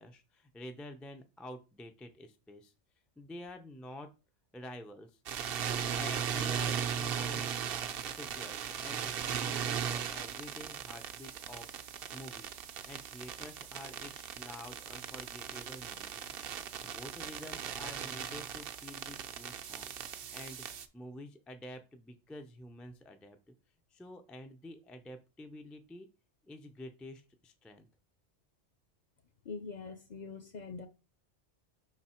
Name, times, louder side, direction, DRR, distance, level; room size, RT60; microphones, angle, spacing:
voice 1, 0.0-2.7 3.2-4.1 4.5-5.2 5.9-7.5 7.8-11.8 12.1-16.4 16.8-20.6 20.9-23.5 23.9-26.1 26.4-27.9, left 1 dB, ahead, 0.4 m, -49 dB
sound 1, 5.3-20.9, right 8 dB, 60° right, 0.8 m, -38 dB
voice 2, 29.4-30.9, left 5 dB, 45° left, 0.7 m, -43 dB
5.4 x 4.0 x 4.3 m
omnidirectional pair, 1.2 m